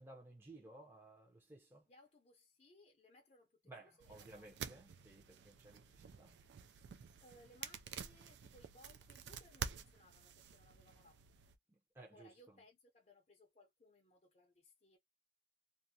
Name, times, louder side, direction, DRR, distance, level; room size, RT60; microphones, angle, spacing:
voice 1, 0.0-1.8 3.7-5.8 6.2-6.4 11.7-12.3, right 2 dB, 15° right, 0.6 m, -57 dB
voice 2, 1.9-4.6 7.2-11.2 12.1-15.0, left 1 dB, 40° left, 0.5 m, -65 dB
sound 1, 4.0-11.6, right 7 dB, 75° right, 0.4 m, -50 dB
2.5 x 2.1 x 2.7 m
head